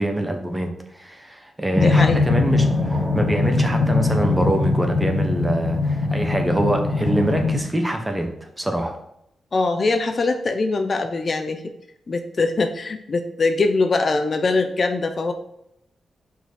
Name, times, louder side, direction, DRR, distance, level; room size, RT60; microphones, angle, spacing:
voice 1, 0.0-9.0, right 1 dB, 10° right, 4 dB, 1.3 m, -24 dB
sound 1, 1.7-7.6, left 3 dB, 15° left, 2.2 m, -21 dB
voice 2, 1.8-2.2 3.4-3.7 9.5-11.6 12.1-15.3, left 3 dB, 45° left, 7 dB, 0.7 m, -22 dB
5.7 x 4.7 x 6.3 m, 0.79 s
cardioid pair, 100°, 0 cm